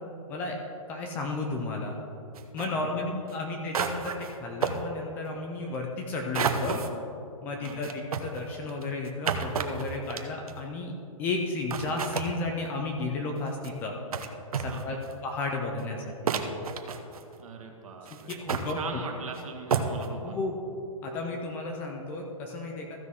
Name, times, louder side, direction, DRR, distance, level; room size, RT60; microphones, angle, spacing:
voice 1, 0.9-2.0 2.5-4.1 4.4-6.8 7.4-10.9 11.2-13.9 14.6-15.0 15.2-16.1 18.5-18.8 20.2-20.5 21.0-22.9, left 3 dB, 10° left, 1 dB, 0.4 m, -33 dB
sound 1, 2.3-2.7 3.3-3.4 3.7-4.4 4.6-4.8 6.3-6.9 7.6-10.6 11.4-11.5 11.7-12.3 13.4-13.7 14.1-14.3 14.5-15.2 15.8-15.9 16.3-17.4 18.1-18.7 19.3-19.4 19.7-20.1, right 6 dB, 85° right, 0.9 m, -30 dB
voice 2, 2.6-3.4 7.6-7.9 14.7-15.0 17.4-20.4, right 5 dB, 70° right, 2 dB, 1.7 m, -41 dB
15.0 x 6.2 x 3.6 m, 2.6 s
hypercardioid pair, 165°, 18 cm